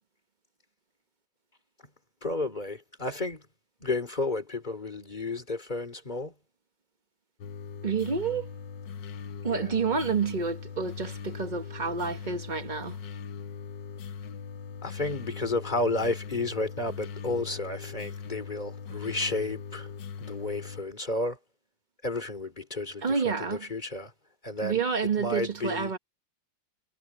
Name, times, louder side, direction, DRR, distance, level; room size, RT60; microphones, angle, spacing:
voice 1, 2.2-3.4 3.8-6.3 9.5-9.7 14.8-19.9 20.2-21.4 22.0-24.1 24.4-24.8 25.2-25.9, left 2 dB, 20° left, 2.9 m, -32 dB
sound 1, 7.4-20.8, left 6 dB, 70° left, 1.6 m, -40 dB
voice 2, 7.8-8.5 9.4-12.9 23.0-23.7 24.6-26.0, right 5 dB, 30° right, 0.9 m, -29 dB
omnidirectional pair, 2.1 m